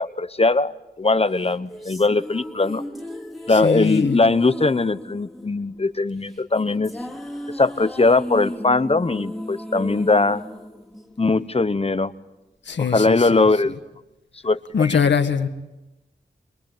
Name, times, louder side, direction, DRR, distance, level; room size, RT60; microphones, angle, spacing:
voice 1, 0.0-2.8 3.5-6.9 7.5-10.4 11.2-12.1 12.8-13.8 14.4-15.0, left 3 dB, 35° left, 12 dB, 1.1 m, -20 dB
sound 1, 1.3-11.7, left 1 dB, ahead, 3.2 m, -36 dB
voice 2, 3.6-4.2 12.7-13.4 14.7-15.5, left 6 dB, 80° left, 7 dB, 1.8 m, -22 dB
24.0 x 23.0 x 9.2 m, 0.99 s
cardioid pair, 55°, 18 cm